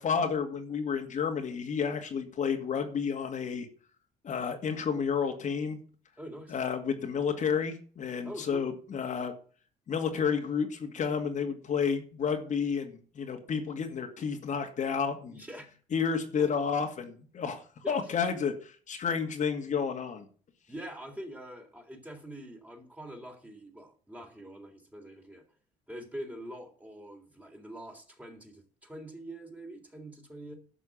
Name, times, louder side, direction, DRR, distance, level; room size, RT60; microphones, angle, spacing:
voice 1, 0.0-3.7 4.2-5.8 6.5-9.3 9.9-15.4 15.9-20.3, left 6 dB, 45° left, 3 dB, 2.3 m, -31 dB
voice 2, 6.2-6.6 8.2-8.7 15.3-15.7 16.4-16.5 17.8-18.1 20.7-25.4 25.9-30.5, right 1 dB, 10° right, 3 dB, 3.5 m, -44 dB
11.5 x 6.3 x 7.3 m, 0.42 s
cardioid pair, 110°, 17 cm